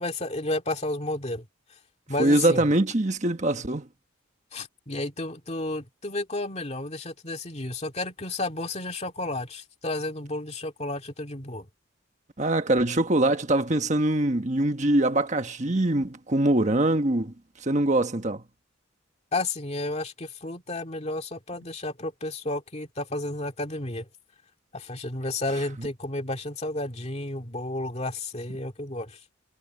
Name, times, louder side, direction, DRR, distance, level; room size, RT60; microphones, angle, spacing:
voice 1, 0.0-1.5 2.1-2.7 4.5-11.7 19.3-24.1 24.7-29.2, left 2 dB, 35° left, 2.2 m, -32 dB
voice 2, 2.2-3.9 12.4-17.3 17.6-18.4, right 1 dB, 35° right, 1.3 m, -23 dB
head